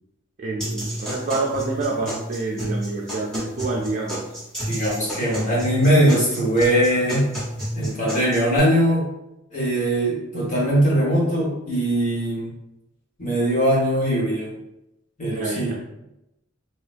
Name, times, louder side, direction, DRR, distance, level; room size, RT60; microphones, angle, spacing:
voice 1, 0.4-4.3 15.3-15.8, right 3 dB, 40° right, -1 dB, 0.4 m, -27 dB
sound 1, 0.6-8.6, equal, 5° left, 1.4 m, -31 dB
voice 2, 4.7-7.3 7.7-9.0 9.5-12.5 13.2-14.5 15.2-15.7, equal, 40° left, -6 dB, 1.4 m, -20 dB
2.9 x 2.7 x 3.3 m, 0.87 s
head